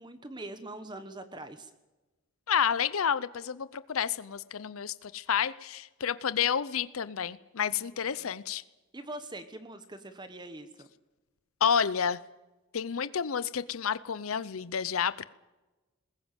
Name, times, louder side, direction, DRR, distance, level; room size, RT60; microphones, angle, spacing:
voice 1, 0.0-1.7 7.7-8.4 8.9-10.9, right 1 dB, 20° right, 10 dB, 1.1 m, -43 dB
voice 2, 2.5-8.6 11.6-12.2 12.7-15.2, left 7 dB, 80° left, 16 dB, 0.6 m, -30 dB
20.5 x 17.5 x 9.0 m, 1.1 s
head